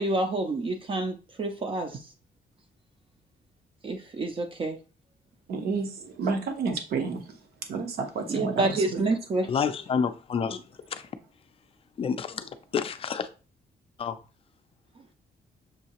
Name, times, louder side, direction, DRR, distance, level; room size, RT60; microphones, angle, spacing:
voice 1, 0.0-1.9 3.8-4.8 8.3-9.5, right 2 dB, 30° right, 0.4 m, -28 dB
voice 2, 5.5-5.9 6.2-7.2 7.7-9.0, right 4 dB, 75° right, 0.9 m, -30 dB
voice 3, 9.5-10.6 10.9-11.0 12.0-13.3 14.0-14.2, left 6 dB, 35° left, 0.3 m, -29 dB
6.3 x 2.7 x 2.9 m
cardioid pair, 165°, 16 cm